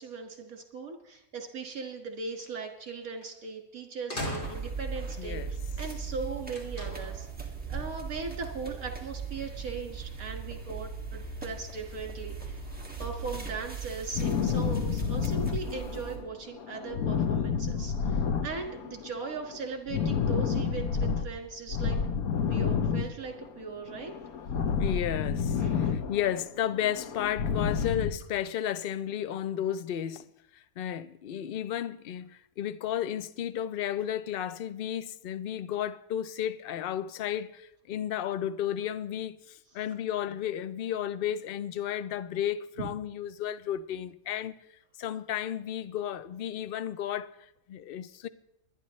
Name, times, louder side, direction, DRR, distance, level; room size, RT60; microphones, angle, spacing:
voice 1, 0.0-12.6 13.0-22.0 22.5-24.2 25.6-26.0 27.7-27.9 42.8-42.9, right 4 dB, 70° right, 2.3 m, -39 dB
sound 1, 3.2-3.3 4.1-5.0 6.5-7.3, left 1 dB, 35° left, 2.3 m, -37 dB
sound 2, 4.4-16.2, right 5 dB, 5° right, 1.8 m, -39 dB
voice 2, 5.2-5.5 24.7-30.2 30.5-44.5 45.0-48.3, left 10 dB, 60° left, 0.6 m, -33 dB
sound 3, 14.1-16.2 16.5-19.1 19.3-21.3 21.7-23.6 23.9-26.4 26.7-28.1, left 6 dB, 85° left, 1.3 m, -30 dB
23.5 x 9.9 x 3.2 m
omnidirectional pair, 1.5 m